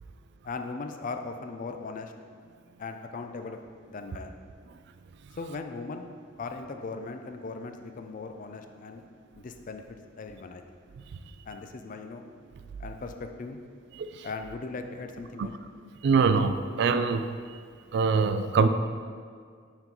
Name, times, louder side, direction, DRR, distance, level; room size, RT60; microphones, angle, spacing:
voice 1, 0.4-2.1 2.8-3.6 3.9-4.3 5.4-6.1 6.4-9.0 9.4-9.8 10.2-10.6 11.5-12.3 12.8-13.6 14.2-15.6, left 3 dB, 45° left, 6 dB, 0.4 m, -38 dB
voice 2, 16.0-17.4 17.9-18.7, right 5 dB, 65° right, 10 dB, 0.3 m, -24 dB
5.9 x 4.4 x 3.8 m, 2.1 s
head